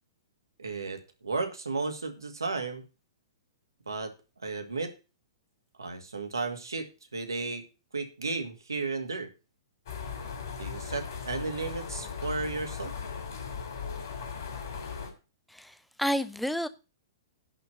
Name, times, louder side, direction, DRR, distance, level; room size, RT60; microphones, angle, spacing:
voice 1, 0.6-2.8 3.9-4.1 4.4-4.9 5.8-7.6 7.9-9.3 10.6-12.9, right 3 dB, 75° right, 2.1 m, -34 dB
sound 1, 9.9-15.1, left 6 dB, 50° left, 3.1 m, -38 dB
voice 2, 15.5-16.7, equal, ahead, 0.6 m, -30 dB
11.0 x 4.4 x 7.9 m
figure-of-eight pair, 110°, 2 cm